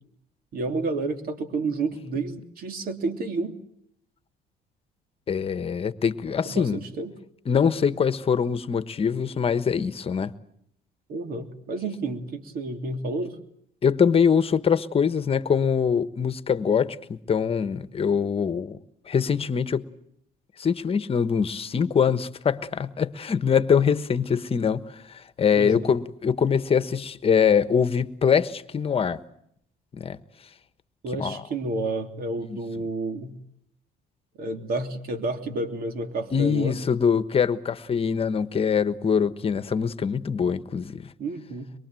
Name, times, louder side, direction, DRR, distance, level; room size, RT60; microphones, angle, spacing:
voice 1, 0.5-3.6 6.4-7.1 11.1-13.4 25.6-25.9 31.0-33.3 34.4-36.8 41.2-41.7, right 3 dB, 60° right, 3.2 m, -30 dB
voice 2, 5.3-6.8 7.5-10.3 13.8-18.8 19.1-19.9 20.6-24.8 25.4-29.2 29.9-30.2 31.2-31.4 32.5-32.6 36.3-41.1, left 7 dB, 35° left, 1.2 m, -23 dB
24.0 x 23.0 x 7.7 m
cardioid pair, 110°, 17 cm